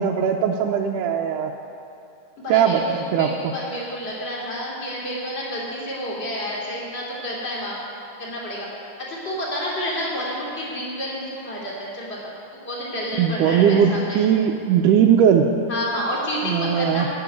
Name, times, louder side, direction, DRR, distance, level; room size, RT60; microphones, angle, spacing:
voice 1, 0.0-1.5 2.5-3.3 13.2-15.5 16.4-17.1, right 8 dB, 85° right, 1 dB, 2.2 m, -19 dB
voice 2, 2.4-7.8 8.2-8.7 9.1-12.2 12.6-14.2 15.7-17.1, equal, 20° left, -4 dB, 2.8 m, -29 dB
16.0 x 6.8 x 9.4 m, 2.7 s
omnidirectional pair, 3.7 m